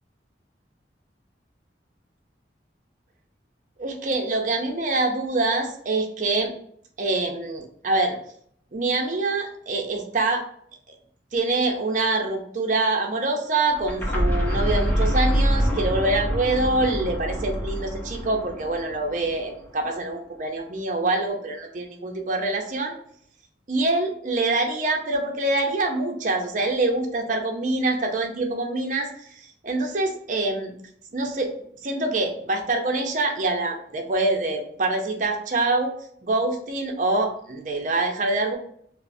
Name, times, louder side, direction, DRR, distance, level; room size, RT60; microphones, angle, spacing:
voice 1, 3.8-6.5 7.0-8.2 8.7-10.4 10.9-11.0 11.3-22.9 23.7-29.1 29.3-30.7 31.1-35.9 36.2-38.5, right 2 dB, 45° right, 3 dB, 0.6 m, -25 dB
sound 1, 13.7-19.5, equal, 10° left, 0.6 m, -25 dB
5.3 x 2.0 x 2.6 m, 0.65 s
head